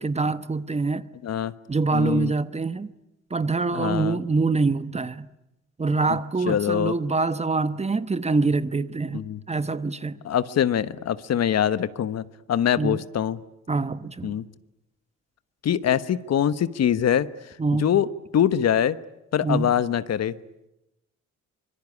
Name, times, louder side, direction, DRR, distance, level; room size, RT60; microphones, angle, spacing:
voice 1, 0.0-1.1 1.7-2.9 3.3-5.3 5.8-10.2 12.8-13.0 13.7-14.3 17.6-18.0 19.4-19.8, right 3 dB, 20° right, 1.1 m, -25 dB
voice 2, 1.9-2.3 3.7-4.2 6.5-6.9 9.1-9.4 10.2-12.2 12.5-13.4 14.2-14.4 15.6-17.3 17.8-18.1 18.3-19.0 19.3-20.3, left 9 dB, 55° left, 1.2 m, -23 dB
25.0 x 22.5 x 9.8 m
cardioid pair, 90°, 30 cm